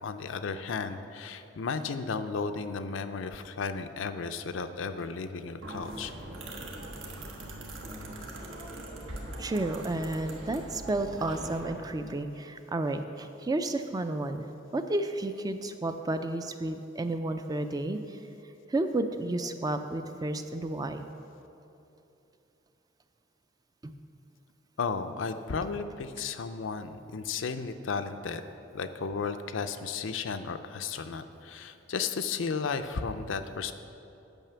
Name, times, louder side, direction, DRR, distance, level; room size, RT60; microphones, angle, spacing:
voice 1, 0.0-6.1 24.8-28.4 28.7-33.7, left 5 dB, 70° left, 9 dB, 0.5 m, -34 dB
sound 1, 5.6-11.7, right 1 dB, 80° right, 1.3 m, -41 dB
voice 2, 9.4-14.5 14.7-18.2 18.7-21.0 23.8-23.9, right 2 dB, 20° right, 8 dB, 0.4 m, -31 dB
9.0 x 5.8 x 6.8 m, 3.0 s
head